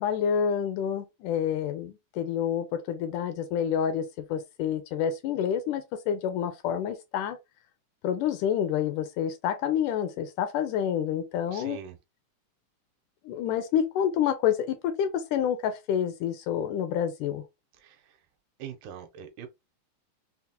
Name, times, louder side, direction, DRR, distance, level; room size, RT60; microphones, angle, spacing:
voice 1, 0.0-7.4 8.0-11.8 13.3-17.4, left 9 dB, 80° left, 1.9 m, -28 dB
voice 2, 11.5-12.0 17.8-18.2 18.6-19.5, right 8 dB, 85° right, 2.2 m, -42 dB
5.7 x 2.0 x 2.7 m
omnidirectional pair, 3.9 m